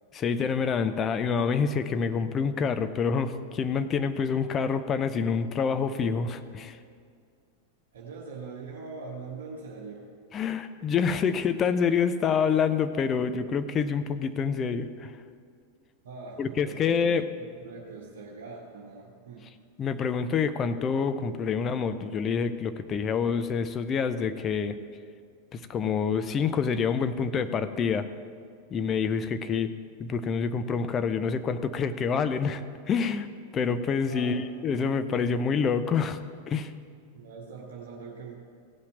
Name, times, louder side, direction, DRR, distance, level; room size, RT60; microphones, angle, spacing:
voice 1, 0.1-6.8 10.3-15.1 16.4-17.3 19.8-24.8 25.5-28.1 28.7-29.7 30.0-33.3 33.5-36.2 36.5-36.7, left 6 dB, 25° left, 10 dB, 0.6 m, -27 dB
voice 2, 7.9-10.1 16.0-17.0 17.3-19.5 34.1-34.4 37.1-38.4, right 4 dB, 60° right, -3 dB, 1.4 m, -42 dB
16.0 x 5.8 x 7.6 m, 2.2 s
figure-of-eight pair, 90°, 0 cm